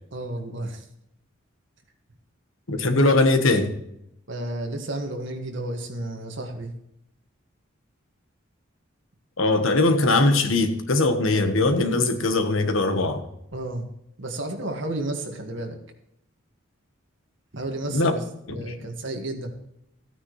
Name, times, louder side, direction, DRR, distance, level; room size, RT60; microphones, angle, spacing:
voice 1, 0.1-0.8 4.3-6.7 13.5-13.9 14.2-15.8 17.5-18.2 18.5-19.5, right 1 dB, 65° right, 3 dB, 1.9 m, -32 dB
voice 2, 2.7-3.7 9.4-13.2 17.9-18.1 18.5-18.6, left 2 dB, 80° left, 7 dB, 1.3 m, -21 dB
14.5 x 9.4 x 3.2 m, 0.79 s
head